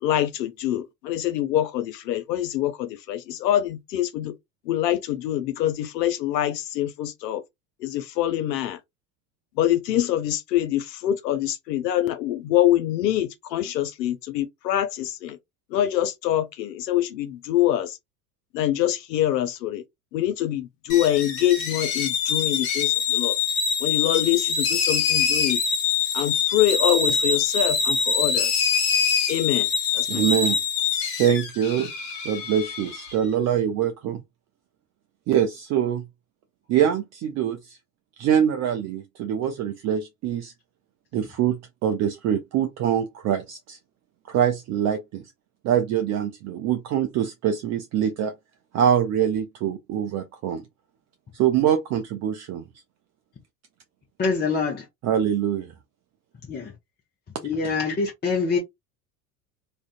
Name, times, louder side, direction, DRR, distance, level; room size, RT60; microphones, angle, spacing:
voice 1, 0.0-4.3 4.7-7.4 7.8-8.8 9.6-15.4 15.7-18.0 18.5-19.8 20.1-23.3 23.8-25.6 26.1-28.7 29.3-29.7 29.9-30.2, left 12 dB, 80° left, 0.6 m, -25 dB
sound 1, 20.9-33.1, left 6 dB, 60° left, 1.0 m, -24 dB
voice 2, 30.1-30.6 31.2-31.9 32.2-34.2 35.3-36.1 36.7-37.8 38.2-40.5 41.1-43.8 44.3-45.2 45.6-48.3 48.7-50.6 51.3-52.6 55.0-55.6 57.6-57.7, right 9 dB, 35° right, 0.4 m, -24 dB
voice 3, 54.2-54.8 56.5-56.7 57.4-58.6, left 4 dB, 20° left, 0.7 m, -25 dB
2.4 x 2.2 x 2.4 m
hypercardioid pair, 70°, 49 cm